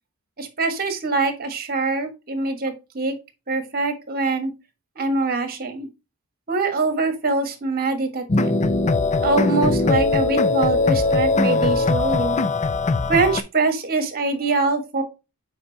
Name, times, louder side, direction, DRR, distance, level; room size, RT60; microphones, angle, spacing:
voice 1, 0.4-3.1 3.5-4.5 5.0-5.9 6.5-8.5 9.2-12.4 13.1-15.0, right 3 dB, 45° right, 7 dB, 1.5 m, -23 dB
sound 1, 8.3-13.4, left 3 dB, 30° left, 0.5 m, -20 dB
7.9 x 4.8 x 2.8 m, 0.27 s
head